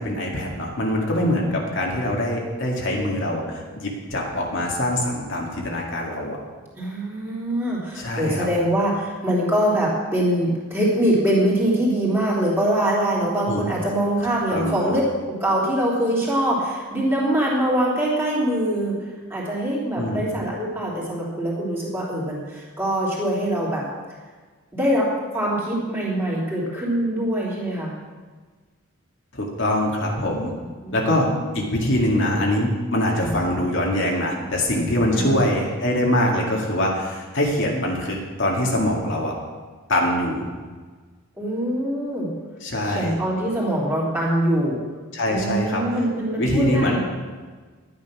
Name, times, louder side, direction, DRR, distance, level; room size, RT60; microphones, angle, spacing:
voice 1, 0.0-6.4 7.9-8.5 13.5-13.6 14.5-14.9 20.0-20.2 29.3-30.5 30.9-31.3 31.5-39.3 39.9-40.5 42.6-43.1 45.1-45.8 46.3-47.0, left 1 dB, 55° left, -1 dB, 2.1 m, -23 dB
voice 2, 6.7-19.0 19.3-23.8 24.7-27.9 30.8-31.5 33.1-33.3 35.1-35.4 41.4-42.3 42.8-44.8 45.3-47.0, right 1 dB, 10° right, -6 dB, 3.4 m, -23 dB
12.0 x 9.6 x 6.1 m, 1.4 s
head